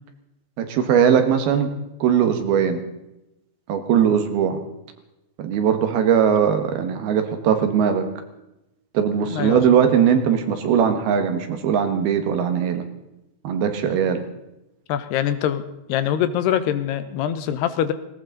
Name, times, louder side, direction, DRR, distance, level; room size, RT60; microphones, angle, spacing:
voice 1, 0.6-1.7 2.0-2.8 3.7-4.6 5.4-8.1 9.0-12.8 13.5-14.2, right 8 dB, 75° right, 7 dB, 3.4 m, -20 dB
voice 2, 14.9-15.6 15.9-17.9, left 10 dB, 85° left, 12 dB, 3.1 m, -23 dB
18.5 x 18.5 x 4.1 m, 0.91 s
omnidirectional pair, 4.6 m